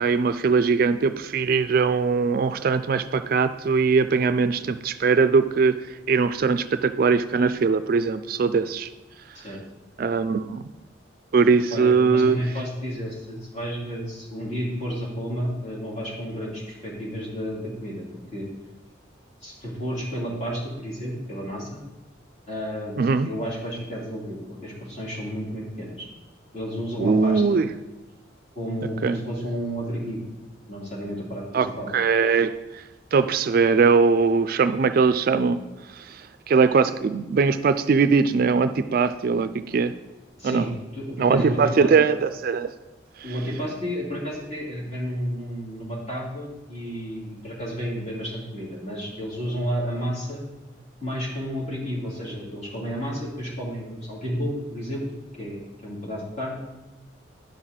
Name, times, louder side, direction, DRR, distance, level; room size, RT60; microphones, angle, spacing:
voice 1, 0.0-5.8 6.1-8.9 10.0-10.7 11.3-12.4 23.0-23.3 27.0-27.7 29.0-29.2 31.5-32.8 33.1-35.6 35.9-39.9 40.4-40.7 41.2-42.7 43.2-43.3, right 5 dB, 50° right, 11 dB, 0.3 m, -21 dB
voice 2, 11.7-18.0 18.3-18.5 19.4-21.8 22.5-26.1 26.5-27.6 28.5-30.2 30.7-31.9 40.4-41.9 43.2-50.4 51.0-56.6, equal, 35° left, -5 dB, 2.8 m, -31 dB
10.0 x 6.1 x 4.0 m, 1.1 s
head